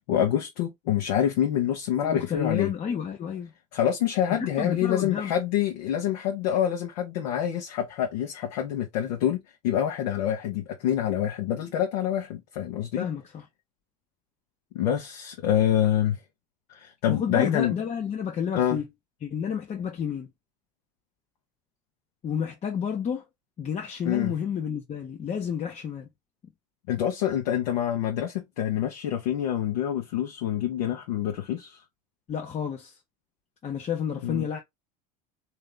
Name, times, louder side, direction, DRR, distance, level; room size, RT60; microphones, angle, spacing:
voice 1, 0.1-2.7 3.7-9.4 9.6-13.1 14.7-16.2 16.7-17.8 18.6-18.8 24.1-24.3 26.9-31.8 34.2-34.5, left 10 dB, 70° left, 0.9 m, -26 dB
voice 2, 2.0-3.5 4.6-5.3 13.0-13.2 17.1-18.8 19.2-20.3 22.2-23.2 23.6-26.1 32.3-32.9 33.6-34.6, left 7 dB, 35° left, 0.8 m, -30 dB
3.2 x 2.7 x 3.7 m
hypercardioid pair, 80°, 21 cm